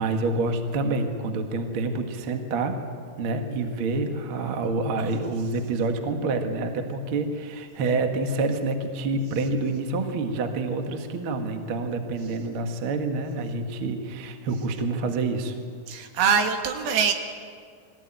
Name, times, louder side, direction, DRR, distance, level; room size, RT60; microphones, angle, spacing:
voice 1, 0.0-2.8 3.2-15.6, right 3 dB, 85° right, 5 dB, 1.1 m, -27 dB
voice 2, 15.9-17.1, right 6 dB, 65° right, 5 dB, 3.2 m, -23 dB
23.0 x 15.5 x 9.0 m, 2.2 s
omnidirectional pair, 5.1 m